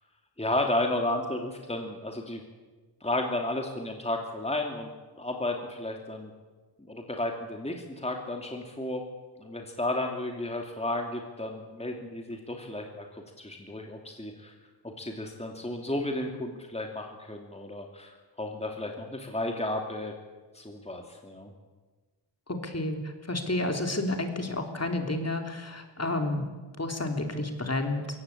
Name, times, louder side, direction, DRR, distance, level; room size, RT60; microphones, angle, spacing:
voice 1, 0.4-2.4 3.0-4.9 5.2-6.3 6.9-9.0 9.4-14.5 14.8-20.1 20.5-21.5, left 1 dB, 15° left, 2 dB, 2.7 m, -33 dB
voice 2, 22.5-26.5 26.8-28.0, left 2 dB, 35° left, 4 dB, 3.3 m, -30 dB
23.0 x 18.0 x 8.6 m, 1.3 s
wide cardioid pair, 75°, 45 cm